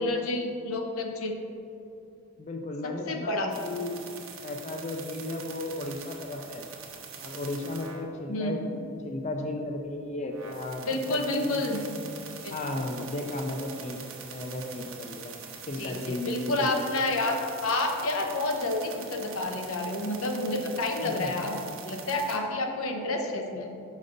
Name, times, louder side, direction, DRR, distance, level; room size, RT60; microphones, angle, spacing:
voice 1, 0.0-1.3 2.8-3.5 8.3-8.6 10.8-11.8 12.4-12.5 15.8-21.5 21.8-23.7, left 2 dB, 90° left, 3 dB, 0.8 m, -29 dB
voice 2, 2.4-4.0 4.4-6.6 7.2-12.0 12.5-15.3 15.7-16.8 21.0-21.3, left 2 dB, 35° left, 3 dB, 0.4 m, -35 dB
sound 1, 3.5-8.1 10.0-10.1 10.3-22.4, right 6 dB, 75° right, 0.9 m, -44 dB
6.5 x 5.2 x 3.9 m, 2.7 s
head